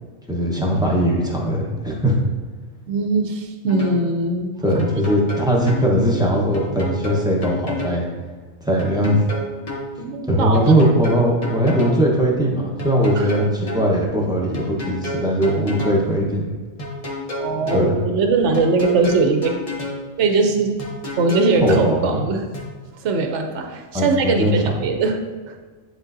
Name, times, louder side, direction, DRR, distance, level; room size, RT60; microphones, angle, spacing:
voice 1, 0.3-2.2 4.6-8.1 8.6-9.2 10.3-16.5 17.7-17.9 21.6-22.2 23.9-24.6, equal, 5° right, -3 dB, 0.9 m, -19 dB
voice 2, 2.9-4.9 10.0-10.7 13.2-13.3 17.4-19.5 20.2-20.8 21.2-22.5 23.0-25.2 25.5-25.6, right 3 dB, 65° right, 4 dB, 1.0 m, -20 dB
sound 1, 3.7-4.0 4.8-5.9 6.5-8.0 8.8-9.9 10.5-12.0 12.8-13.9 14.5-16.0 16.8-17.9 18.5-20.0 20.8-21.9 22.5-22.6, left 1 dB, 30° left, 1.0 m, -29 dB
9.9 x 3.8 x 2.7 m, 1.4 s
omnidirectional pair, 1.3 m